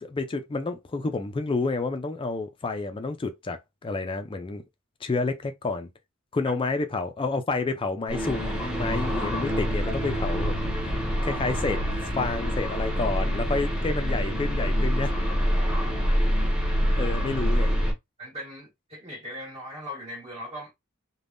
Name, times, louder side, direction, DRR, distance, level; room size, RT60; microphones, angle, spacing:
voice 1, 0.0-4.6 5.0-5.9 6.3-10.5 11.2-11.8 12.1-15.1 17.0-17.7, left 3 dB, 25° left, 0.4 m, -29 dB
sound 1, 8.1-17.9, equal, 5° right, 0.9 m, -26 dB
voice 2, 15.6-16.1 16.9-17.1 18.2-20.7, equal, 30° right, 1.4 m, -40 dB
3.4 x 2.2 x 2.5 m
head